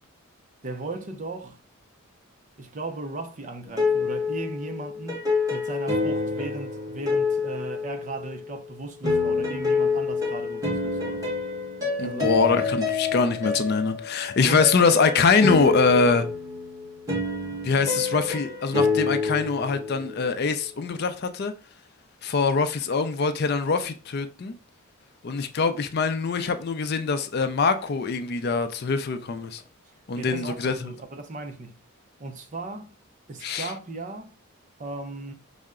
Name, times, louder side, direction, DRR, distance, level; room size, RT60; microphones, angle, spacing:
voice 1, 0.6-1.6 2.6-11.2 12.0-12.3 14.4-14.7 30.2-31.8 32.2-33.0 33.3-34.3 34.8-35.3, right 2 dB, 35° right, 0.5 m, -36 dB
sound 1, 3.7-8.4 9.0-20.3, left 4 dB, 15° right, 1.2 m, -27 dB
voice 2, 12.0-16.3 17.6-21.5 22.2-24.5 25.2-29.6 30.1-30.9 33.4-33.7, left 4 dB, 45° left, 0.4 m, -23 dB
5.5 x 2.1 x 3.6 m
head